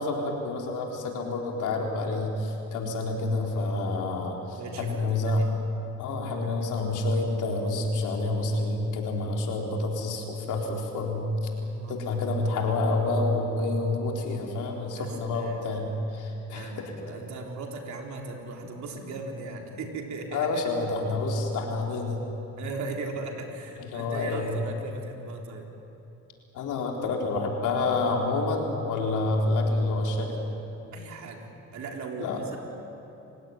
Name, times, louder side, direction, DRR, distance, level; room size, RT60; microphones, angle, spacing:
voice 1, 0.0-5.4 6.0-11.3 11.9-16.7 20.3-22.2 23.8-24.6 26.5-30.4 32.2-32.4, left 2 dB, 85° left, 0 dB, 4.1 m, -28 dB
voice 2, 3.5-4.1 4.6-5.5 6.2-6.6 11.6-12.0 14.9-15.8 16.5-20.5 22.6-25.7 30.9-32.6, right 3 dB, 70° right, 1 dB, 3.9 m, -38 dB
28.0 x 17.0 x 9.5 m, 2.9 s
cardioid pair, 90°, 30 cm